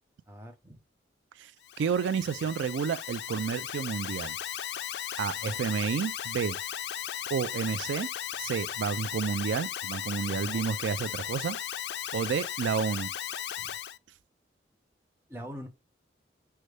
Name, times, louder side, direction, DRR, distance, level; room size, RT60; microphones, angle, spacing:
voice 1, 0.3-0.8 5.4-5.6 10.3-10.7 13.6-13.7 15.3-15.7, equal, 15° right, 0.7 m, -43 dB
Alarm, 1.6-14.0, left 10 dB, 70° left, 0.3 m, -36 dB
voice 2, 1.8-4.4 5.2-6.6 7.3-8.1 8.4-11.6 12.1-13.1, right 6 dB, 90° right, 0.3 m, -30 dB
6.3 x 2.2 x 3.2 m
head